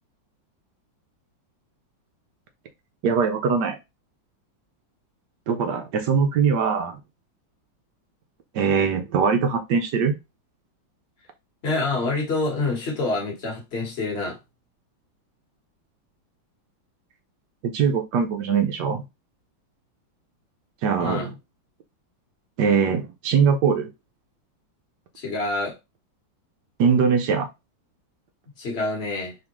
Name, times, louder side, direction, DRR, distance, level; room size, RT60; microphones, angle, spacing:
voice 1, 3.0-3.8 5.5-7.0 8.5-10.1 17.6-19.1 20.8-21.3 22.6-23.9 26.8-27.5, right 6 dB, 70° right, 1.2 m, -21 dB
voice 2, 11.6-14.4 21.0-21.3 25.2-25.8 28.6-29.3, left 3 dB, 40° left, 1.3 m, -27 dB
3.5 x 3.5 x 3.0 m
omnidirectional pair, 2.1 m